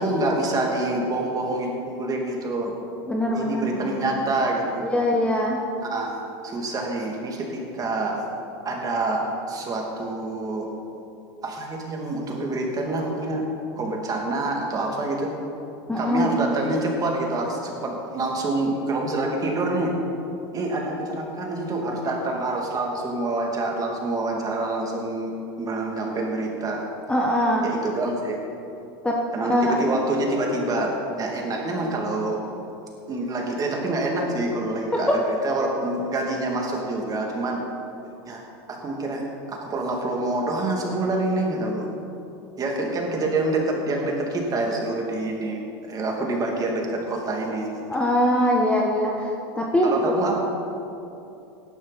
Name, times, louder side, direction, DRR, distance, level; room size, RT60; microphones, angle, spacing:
voice 1, 0.0-2.7 3.3-4.8 5.8-6.1 6.4-8.2 8.6-10.7 11.4-13.4 13.8-15.3 16.0-19.9 20.5-25.3 25.6-26.8 27.6-28.4 29.3-30.9 31.2-32.4 33.1-37.6 38.3-38.4 38.7-39.2 39.5-41.9 42.6-45.6 45.9-47.7 49.8-50.4, right 2 dB, 25° right, 0 dB, 2.7 m, -26 dB
voice 2, 3.1-4.0 4.9-5.6 15.9-16.3 27.1-27.6 29.0-29.8 47.9-50.2, equal, 10° left, -1 dB, 1.2 m, -22 dB
16.5 x 11.5 x 4.3 m, 2.8 s
supercardioid pair, 120°, 14 cm